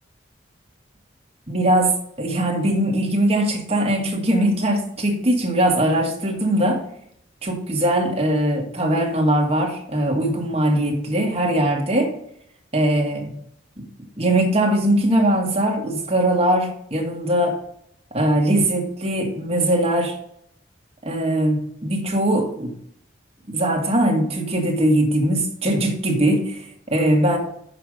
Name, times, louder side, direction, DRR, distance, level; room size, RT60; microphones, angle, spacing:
voice 1, 1.5-1.9 2.2-6.8 7.4-12.1 12.7-13.3 13.8-13.9 14.2-17.6 18.1-20.2 21.0-22.7 23.5-27.4, right 1 dB, 30° right, 0 dB, 1.7 m, -21 dB
6.8 x 5.2 x 6.3 m, 0.68 s
head